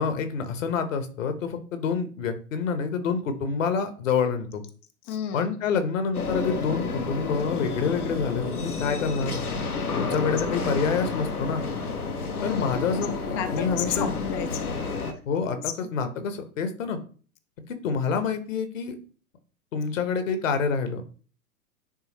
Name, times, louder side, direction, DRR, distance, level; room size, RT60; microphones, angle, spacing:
voice 1, 0.0-4.6 5.3-9.4 9.9-11.6 12.4-14.1 15.3-17.0 17.6-18.9 19.7-21.0, left 5 dB, 60° left, 8 dB, 1.3 m, -27 dB
voice 2, 5.0-5.5 10.2-10.7 12.3-12.6 12.9-14.8 16.0-16.3, left 9 dB, 20° left, 7 dB, 0.4 m, -33 dB
sound 1, 6.1-15.1, left 4 dB, 85° left, 1.2 m, -30 dB
9.7 x 3.5 x 3.1 m, 0.41 s
figure-of-eight pair, 100°, 43 cm